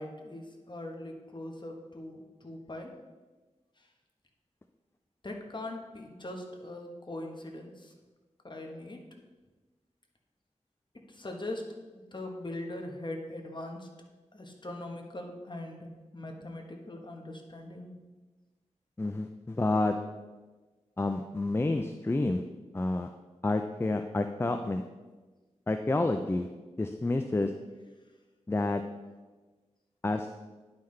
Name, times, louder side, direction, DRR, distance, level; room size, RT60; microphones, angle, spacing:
voice 1, 0.0-2.9 5.2-7.9 8.4-9.0 10.9-11.7 11.9-13.9 14.3-17.9, left 1 dB, 40° left, 2 dB, 1.2 m, -41 dB
voice 2, 19.0-19.9 21.0-22.4 22.7-23.1 23.4-24.8 25.7-26.5 26.8-27.5 28.5-28.8 30.0-30.3, left 2 dB, 20° left, 7 dB, 0.4 m, -29 dB
10.5 x 5.7 x 3.2 m, 1.3 s
wide cardioid pair, 60°, 12 cm